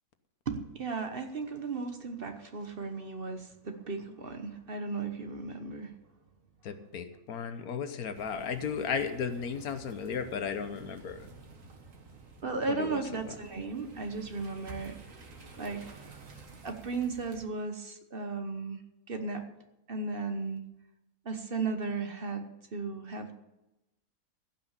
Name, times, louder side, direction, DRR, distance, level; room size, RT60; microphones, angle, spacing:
voice 1, 0.5-5.9 12.4-15.0 15.6-15.8 16.6-18.8 19.1-19.4 19.9-20.6 21.2-23.3, right 4 dB, 45° right, 7 dB, 1.2 m, -35 dB
voice 2, 6.6-11.3 12.7-13.0, left 6 dB, 85° left, 9 dB, 1.4 m, -35 dB
sound 1, 8.1-17.5, right 3 dB, 65° right, 1.8 m, -51 dB
16.0 x 6.0 x 8.2 m, 0.94 s
omnidirectional pair, 1.5 m